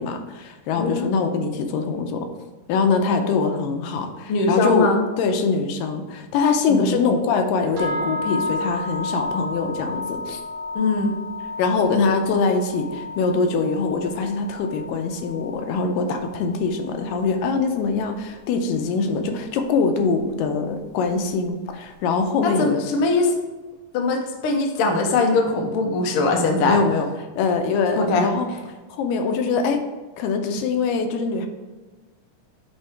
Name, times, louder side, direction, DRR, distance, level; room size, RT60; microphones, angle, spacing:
voice 1, 0.0-2.3 2.7-4.9 5.2-10.4 11.6-22.8 26.6-27.1 27.4-28.5 28.9-29.8 30.2-31.5, left 4 dB, 90° left, 5 dB, 2.4 m, -23 dB
voice 2, 0.8-1.1 4.3-5.0 6.7-7.0 10.7-11.1 22.4-23.4 23.9-26.8 28.0-28.3, left 3 dB, 65° left, 1 dB, 1.4 m, -21 dB
sound 1, 7.8-17.8, left 2 dB, 65° right, 2.6 m, -32 dB
8.5 x 3.5 x 4.6 m, 1.2 s
omnidirectional pair, 3.8 m